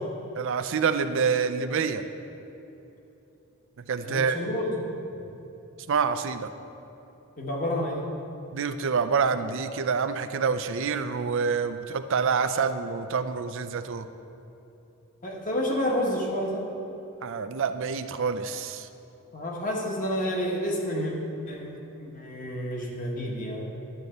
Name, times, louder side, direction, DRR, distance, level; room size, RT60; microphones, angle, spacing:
voice 1, 0.4-2.0 3.9-4.4 5.9-6.5 8.5-14.1 17.2-18.9, right 5 dB, 65° right, 10 dB, 0.5 m, -27 dB
voice 2, 4.0-4.8 5.1-5.2 7.4-8.1 15.2-16.6 19.3-21.1 21.5-23.7, equal, 40° left, -1 dB, 1.4 m, -29 dB
11.0 x 4.1 x 7.8 m, 3.0 s
head